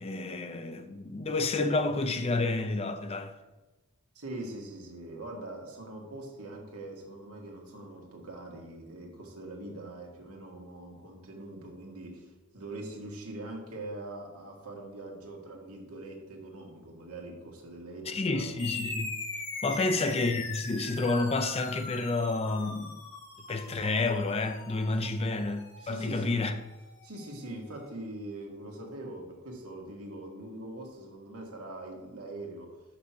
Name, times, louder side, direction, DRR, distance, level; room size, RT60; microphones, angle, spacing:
voice 1, 0.0-3.3 18.1-19.2 19.6-23.0 23.5-26.6, left 3 dB, 25° left, 0.5 m, -30 dB
voice 2, 4.1-18.5 19.7-19.9 24.9-25.1 25.8-26.4 27.0-32.8, right 2 dB, 85° right, 1.8 m, -43 dB
sound 1, 18.6-27.5, left 3 dB, 70° left, 3.0 m, -41 dB
6.0 x 5.9 x 5.8 m
head